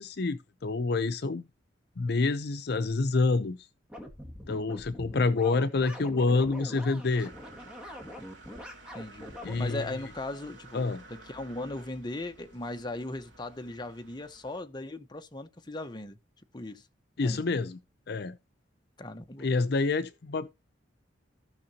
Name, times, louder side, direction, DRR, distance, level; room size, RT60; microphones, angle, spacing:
voice 1, 0.0-1.4 2.0-3.6 4.5-7.3 9.4-9.8 10.7-11.0 17.2-17.8 18.1-18.4 19.4-20.5, left 3 dB, 60° left, 0.6 m, -27 dB
sound 1, 3.9-9.8, left 1 dB, 5° right, 2.0 m, -43 dB
sound 2, 7.1-14.6, right 2 dB, 80° right, 2.5 m, -53 dB
voice 2, 8.9-16.2 16.5-16.8 17.2-17.4 19.0-19.5, left 2 dB, 25° left, 0.9 m, -38 dB
15.5 x 5.8 x 2.8 m
head